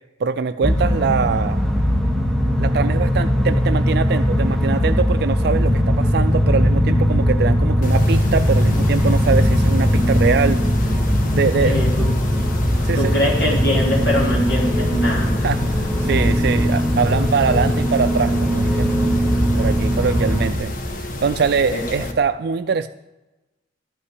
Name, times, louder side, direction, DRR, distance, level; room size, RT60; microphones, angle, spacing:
voice 1, 0.2-1.6 2.6-10.6 11.3-11.8 12.8-13.1 15.4-19.2 19.6-20.7 21.2-22.9, right 5 dB, 60° right, 10 dB, 0.4 m, -22 dB
sound 1, 0.6-20.5, equal, 5° left, 0.9 m, -19 dB
Mechanisms, 7.8-22.1, left 1 dB, 50° left, 1.2 m, -30 dB
voice 2, 11.6-12.1 12.9-15.4 21.7-22.1, equal, 70° left, -3 dB, 3.7 m, -23 dB
12.5 x 5.7 x 8.3 m, 1.0 s
head